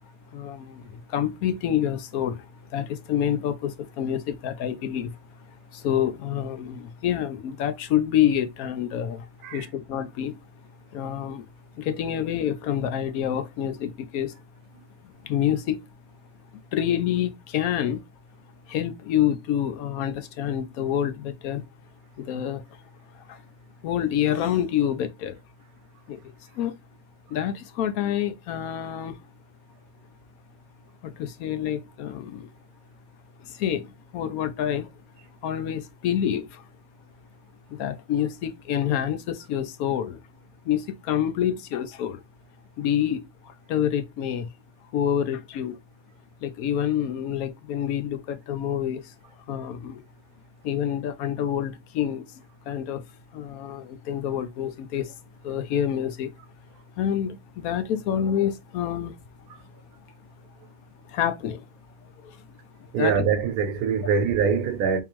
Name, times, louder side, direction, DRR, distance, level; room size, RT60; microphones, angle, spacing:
voice 1, 0.3-0.8 1.1-2.4 2.7-5.1 5.8-9.2 9.5-10.4 10.9-11.4 11.8-14.3 15.2-15.8 16.7-18.0 18.7-21.6 22.2-22.6 23.8-25.3 26.1-26.2 26.6-26.7 27.3-29.1 31.0-32.5 33.6-33.8 34.1-34.9 35.4-36.5 37.8-40.2 40.7-42.2 42.8-43.2 43.7-44.5 44.9-45.7 46.4-49.0 49.5-50.0 50.6-52.2 52.7-53.0 53.3-55.1 55.4-56.3 57.0-59.1 61.1-61.6 63.0-63.2, left 10 dB, 75° left, 1.0 m, -27 dB
voice 2, 62.9-65.0, right 6 dB, 90° right, 1.1 m, -23 dB
3.6 x 2.9 x 3.0 m
omnidirectional pair, 1.5 m